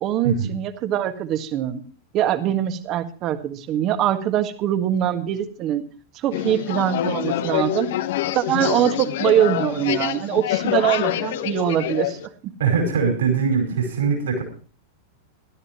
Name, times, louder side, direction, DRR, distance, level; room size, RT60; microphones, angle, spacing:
voice 1, 0.0-1.8 2.1-5.8 6.2-7.9 8.3-12.2 12.4-12.5, right 11 dB, 35° right, 9 dB, 1.7 m, -23 dB
sound 1, 6.3-12.3, left 13 dB, 55° left, 1.0 m, -26 dB
voice 2, 12.6-14.4, right 6 dB, 60° right, 4 dB, 4.8 m, -21 dB
20.5 x 13.0 x 3.0 m, 0.38 s
figure-of-eight pair, 90°, 0 cm